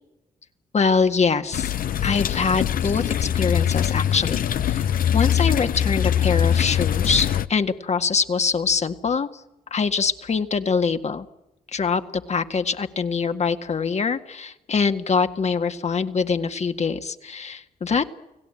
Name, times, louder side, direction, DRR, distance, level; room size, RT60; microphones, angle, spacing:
voice 1, 0.7-1.7 2.0-4.9 5.1-9.3 9.7-11.3 11.7-18.1, left 5 dB, 45° left, 8 dB, 1.9 m, -24 dB
sound 1, 1.5-7.5, left 9 dB, 65° left, 0.9 m, -22 dB
30.0 x 18.0 x 9.0 m, 0.96 s
cardioid pair, 75°, 15 cm